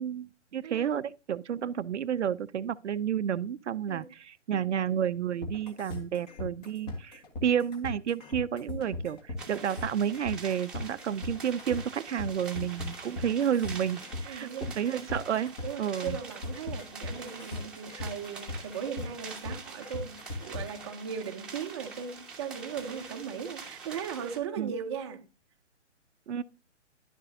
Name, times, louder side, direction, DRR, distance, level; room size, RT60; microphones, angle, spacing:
voice 1, 0.0-14.5 14.8-16.2 24.6-24.7 26.3-26.4, right 9 dB, 70° right, 0.5 m, -31 dB
voice 2, 0.6-1.0 3.9-4.1 14.3-14.7 15.6-25.3, right 7 dB, 25° right, 0.6 m, -38 dB
sound 1, 5.4-20.8, left 2 dB, 35° left, 1.8 m, -38 dB
sound 2, 9.4-24.4, right 4 dB, ahead, 1.1 m, -46 dB
11.0 x 6.7 x 2.7 m
hypercardioid pair, 145°, 37 cm